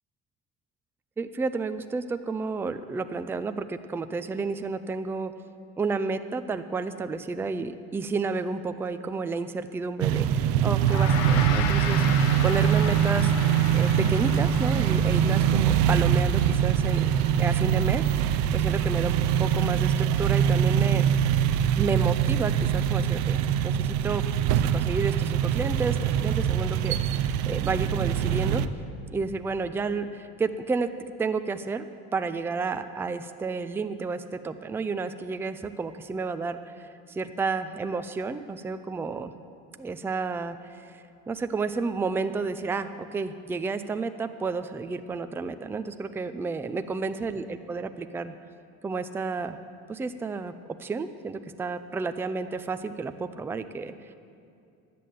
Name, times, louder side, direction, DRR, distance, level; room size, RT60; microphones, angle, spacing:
voice 1, 1.2-5.3 5.8-12.0 12.4-17.1 17.4-21.1 21.8-24.2 24.5-28.7 29.1-31.9 32.1-39.3 39.8-48.3 48.8-49.6 49.9-50.5 50.8-54.1, right 4 dB, 10° right, 10 dB, 0.3 m, -31 dB
sound 1, 10.0-28.7, right 9 dB, 75° right, 0.6 m, -23 dB
Gong, 10.8-20.3, left 9 dB, 65° left, 0.8 m, -37 dB
12.0 x 8.4 x 7.6 m, 2.5 s
cardioid pair, 135°, 29 cm